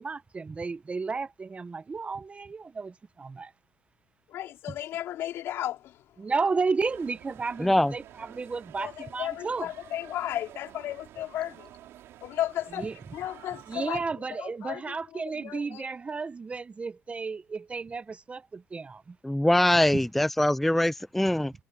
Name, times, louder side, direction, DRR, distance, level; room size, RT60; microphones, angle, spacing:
voice 1, 0.0-3.5 6.2-9.7 12.8-12.9 13.7-19.1, right 4 dB, 30° right, 1.1 m, -33 dB
voice 2, 4.3-6.0 8.8-11.7 12.2-15.9, left 12 dB, 75° left, 3.4 m, -35 dB
sound 1, 6.8-13.9, right 13 dB, 75° right, 4.1 m, -51 dB
voice 3, 7.6-7.9 19.2-21.5, left 1 dB, 5° left, 0.3 m, -23 dB
cardioid pair, 90°, 4 cm